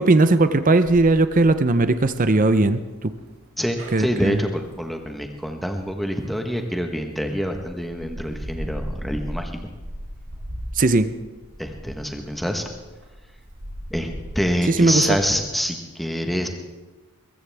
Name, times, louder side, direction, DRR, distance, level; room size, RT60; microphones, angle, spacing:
voice 1, 0.0-3.1 3.9-4.4 10.8-11.1 14.7-15.2, right 2 dB, 35° right, 12 dB, 0.6 m, -18 dB
sound 1, 1.3-6.8 7.3-15.3, equal, 70° right, 3.1 m, -38 dB
voice 2, 3.6-9.7 11.6-12.6 13.9-16.5, equal, ahead, 4 dB, 1.2 m, -26 dB
22.0 x 14.5 x 3.5 m, 1.2 s
head